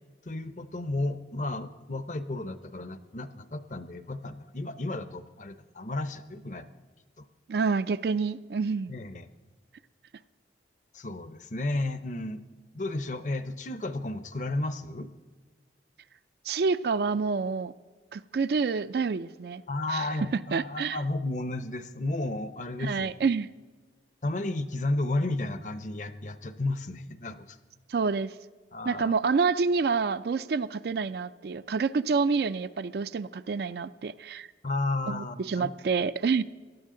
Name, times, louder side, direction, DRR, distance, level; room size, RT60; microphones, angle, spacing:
voice 1, 0.3-6.7 7.2-7.3 8.9-9.3 10.9-12.4 12.7-15.1 19.7-23.1 24.2-27.6 28.7-29.1 34.6-35.7, left 2 dB, 40° left, 0.6 m, -33 dB
voice 2, 7.5-8.9 16.5-17.7 18.1-19.6 19.9-20.1 20.5-21.0 22.8-23.5 27.9-28.3 28.9-34.5 35.1-36.4, right 5 dB, 60° right, 0.4 m, -28 dB
18.5 x 12.5 x 3.8 m
head